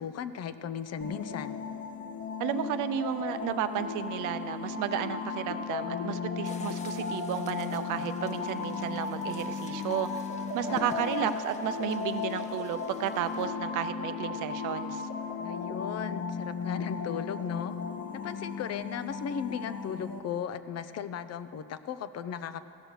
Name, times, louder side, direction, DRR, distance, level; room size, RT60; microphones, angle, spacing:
voice 1, 0.0-1.6 10.7-10.9 15.4-17.7 18.1-22.6, left 8 dB, 55° left, 12 dB, 0.6 m, -36 dB
sound 1, 1.0-20.2, left 5 dB, 70° left, 1.1 m, -35 dB
voice 2, 2.4-10.1 10.5-15.1, right 10 dB, 90° right, 11 dB, 0.6 m, -33 dB
sound 2, 6.4-13.5, left 2 dB, 25° left, 0.9 m, -51 dB
16.0 x 6.2 x 6.6 m, 2.7 s
cardioid pair, 90°, 30 cm